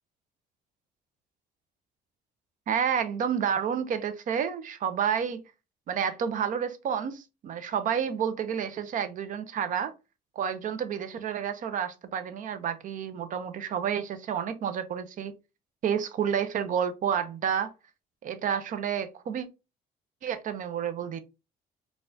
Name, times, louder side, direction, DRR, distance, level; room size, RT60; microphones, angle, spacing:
voice 1, 2.7-5.4 5.9-9.9 10.4-15.3 15.8-17.7 18.2-19.5 20.2-21.2, right 8 dB, 50° right, 0.5 m, -30 dB
4.1 x 2.3 x 2.6 m
cardioid pair, 110°, 17 cm